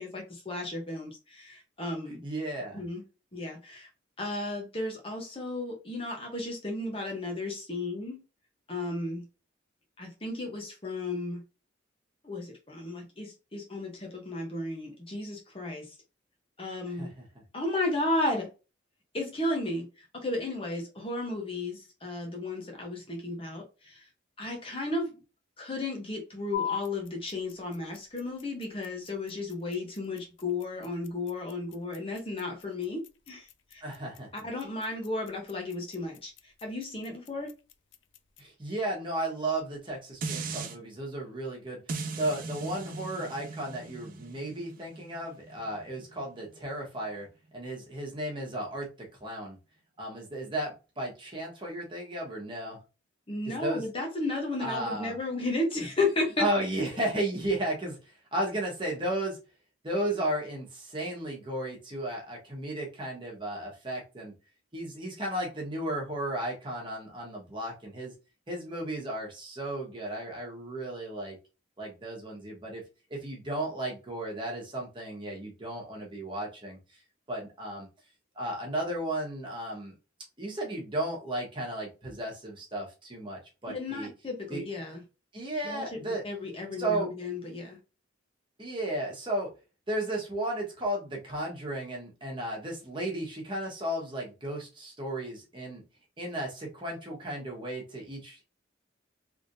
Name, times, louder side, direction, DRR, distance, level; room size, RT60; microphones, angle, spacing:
voice 1, 0.0-2.2 2.7-3.0 3.3-3.9 4.2-8.2 8.7-9.2 10.0-11.4 12.2-15.9 16.6-17.1 17.5-18.5 19.1-24.1 24.4-25.1 25.6-33.8 34.4-37.5 53.3-56.5 83.7-85.0 85.6-87.8, left 2 dB, 30° left, 1.0 m, -34 dB
voice 2, 2.1-2.8 16.9-17.1 33.8-34.3 38.4-41.8 42.2-47.3 47.5-49.6 50.0-52.8 53.5-53.8 54.6-55.1 56.4-58.0 58.3-59.4 59.8-64.3 64.7-68.1 68.5-71.4 71.8-72.8 73.1-76.8 77.3-77.9 78.3-79.9 80.4-84.1 84.5-84.6 85.3-86.2 86.8-87.1 88.6-89.5 89.9-95.8 96.2-98.4, right 1 dB, 25° right, 1.3 m, -34 dB
sound 1, 26.5-38.5, left 8 dB, 70° left, 0.5 m, -43 dB
sound 2, 40.2-40.8 41.9-47.0 47.5-47.6, right 4 dB, 45° right, 0.5 m, -39 dB
3.5 x 3.4 x 2.6 m
head